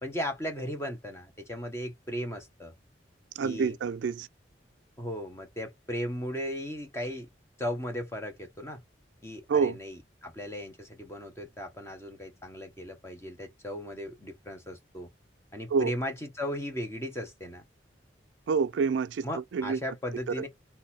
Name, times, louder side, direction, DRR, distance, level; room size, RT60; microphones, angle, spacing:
voice 1, 0.0-2.7 3.4-3.8 5.0-7.3 7.6-8.8 9.2-15.1 15.5-17.6 19.2-20.5, equal, 15° left, 1.4 m, -36 dB
voice 2, 3.4-4.3 9.5-9.8 15.7-15.9 18.5-19.8 20.4-20.5, right 5 dB, 80° right, 0.4 m, -27 dB
4.1 x 2.7 x 4.3 m
head